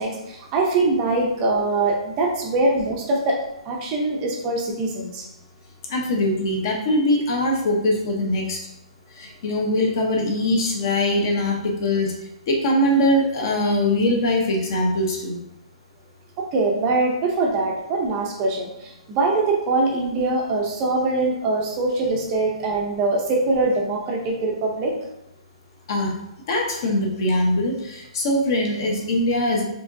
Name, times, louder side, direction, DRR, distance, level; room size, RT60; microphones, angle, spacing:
voice 1, 0.0-3.4 3.6-5.3 16.4-25.0, right 2 dB, 20° right, -1 dB, 0.5 m, -23 dB
voice 2, 5.9-8.6 9.2-12.1 12.5-15.4 25.9-26.1 26.5-29.6, left 1 dB, 40° left, 1 dB, 0.8 m, -22 dB
4.7 x 2.9 x 2.6 m, 0.86 s
hypercardioid pair, 170°, 4 cm